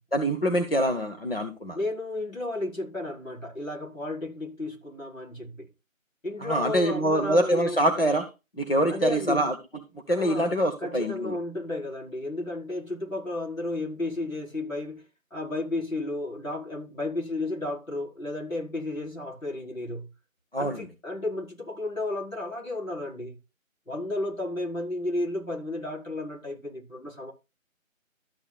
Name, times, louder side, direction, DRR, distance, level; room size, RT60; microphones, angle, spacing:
voice 1, 0.1-1.8 6.4-8.3 8.6-9.5 10.1-11.4 20.5-20.8, equal, 45° left, 1.4 m, -25 dB
voice 2, 1.7-5.7 6.2-7.8 8.9-9.4 10.1-10.5 10.8-15.0 15.3-20.1 20.6-23.4 23.9-27.3, left 2 dB, 75° left, 5.0 m, -33 dB
13.0 x 8.6 x 2.4 m
figure-of-eight pair, 170°, 41 cm